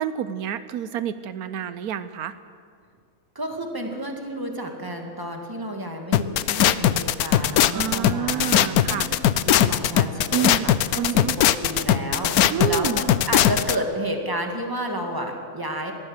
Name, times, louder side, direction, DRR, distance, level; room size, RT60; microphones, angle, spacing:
voice 1, 0.0-2.3 7.7-9.1 10.3-11.4 12.5-13.0, right 9 dB, 85° right, 13 dB, 1.2 m, -28 dB
voice 2, 3.3-9.2 9.4-15.9, right 1 dB, 15° right, 2 dB, 2.3 m, -31 dB
sound 1, 6.1-13.8, left 11 dB, 85° left, 1.2 m, -19 dB
22.0 x 15.0 x 8.1 m, 2.2 s
omnidirectional pair, 1.5 m